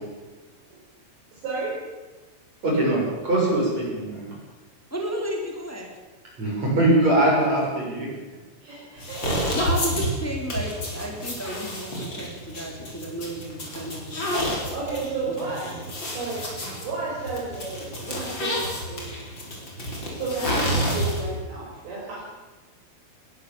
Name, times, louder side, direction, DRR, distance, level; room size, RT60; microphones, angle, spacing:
voice 1, 1.3-1.8 8.6-9.4 14.7-15.8 16.1-16.5 16.8-19.0 20.0-22.3, right 3 dB, 55° right, -6 dB, 7.4 m, -32 dB
voice 2, 2.6-4.3 6.4-8.1, right 1 dB, 30° right, -4 dB, 7.6 m, -22 dB
voice 3, 4.9-5.9 9.5-14.5 15.2-15.4, right 1 dB, 5° left, 1 dB, 2.9 m, -33 dB
sound 1, 9.0-21.4, equal, 25° left, 5.2 m, -29 dB
20.5 x 20.5 x 7.3 m, 1.2 s
omnidirectional pair, 5.9 m